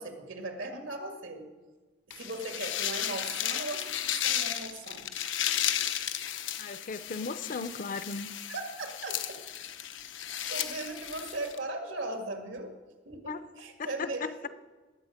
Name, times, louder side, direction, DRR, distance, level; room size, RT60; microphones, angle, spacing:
voice 1, 0.0-1.5 2.2-3.9 4.1-5.1 8.5-9.4 10.5-12.7 13.1-14.5, right 2 dB, 90° right, 4 dB, 1.8 m, -38 dB
sound 1, 2.1-11.6, left 10 dB, 85° left, 0.7 m, -34 dB
voice 2, 6.6-8.3 13.3-13.5 13.8-14.5, left 4 dB, 45° left, 13 dB, 0.5 m, -36 dB
19.0 x 7.6 x 5.1 m, 1.3 s
head